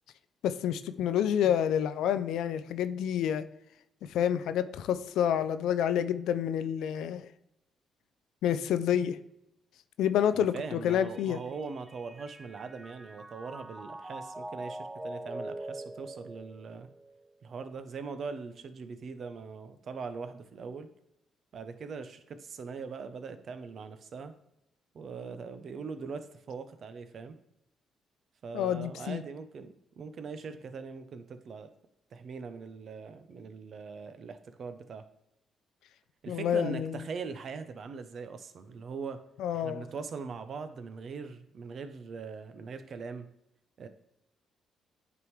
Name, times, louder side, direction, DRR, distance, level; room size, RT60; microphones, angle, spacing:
voice 1, 0.4-3.5 4.1-7.3 8.4-9.2 10.0-11.4 28.5-29.2 36.3-37.0 39.4-39.9, left 9 dB, 75° left, 12 dB, 0.3 m, -28 dB
voice 2, 10.3-16.9 17.4-20.9 21.5-24.3 24.9-27.4 28.4-31.7 32.1-35.1 36.2-39.2 39.5-43.3 43.8-43.9, right 5 dB, 60° right, 10 dB, 0.6 m, -41 dB
Mallet percussion, 10.9-17.3, right 1 dB, 15° right, 0.4 m, -44 dB
9.2 x 3.6 x 3.2 m, 0.82 s
hypercardioid pair, 50°, 0 cm